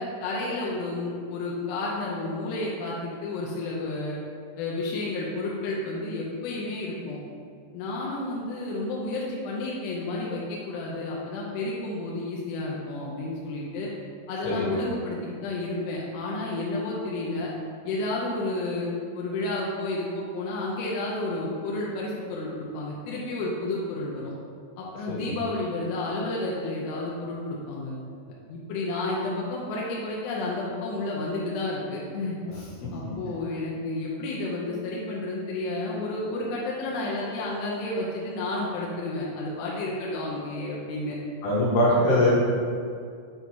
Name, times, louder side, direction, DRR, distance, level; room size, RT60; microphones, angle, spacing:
voice 1, 0.0-4.2 4.6-7.2 7.7-13.9 14.3-17.5 17.9-18.9 19.1-24.3 24.8-28.0 28.5-32.4 32.9-41.2 41.9-42.0, left 2 dB, 80° left, -4 dB, 2.5 m, -31 dB
voice 2, 41.4-42.4, left 1 dB, 65° left, -8 dB, 3.2 m, -22 dB
7.5 x 2.8 x 4.6 m, 2.2 s
omnidirectional pair, 5.6 m